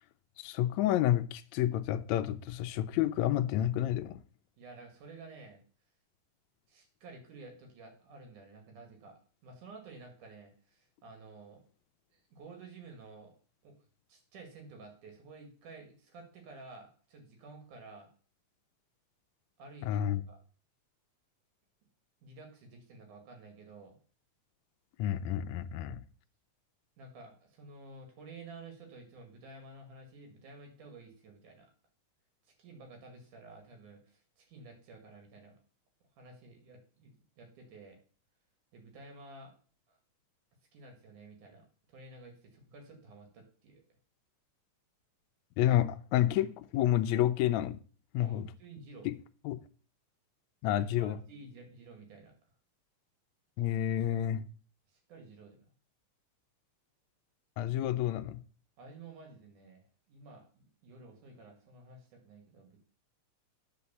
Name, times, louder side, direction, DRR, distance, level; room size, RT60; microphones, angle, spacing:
voice 1, 0.4-4.2 19.8-20.2 25.0-26.0 45.6-47.8 48.1-48.5 49.1-49.2 49.5-49.6 50.6-51.2 53.6-54.5 57.6-58.4, left 12 dB, 75° left, 1.8 m, -29 dB
voice 2, 4.6-5.6 6.7-11.6 12.1-13.3 13.6-13.8 14.1-18.1 19.6-20.0 20.3-20.4 22.2-24.0 27.0-31.7 32.5-35.6 36.2-38.0 38.7-39.5 39.9-40.0 40.7-43.8 48.2-49.1 50.7-52.3 54.9-55.7 58.8-62.9, right 3 dB, 80° right, 3.6 m, -52 dB
9.6 x 5.4 x 6.9 m
omnidirectional pair, 3.5 m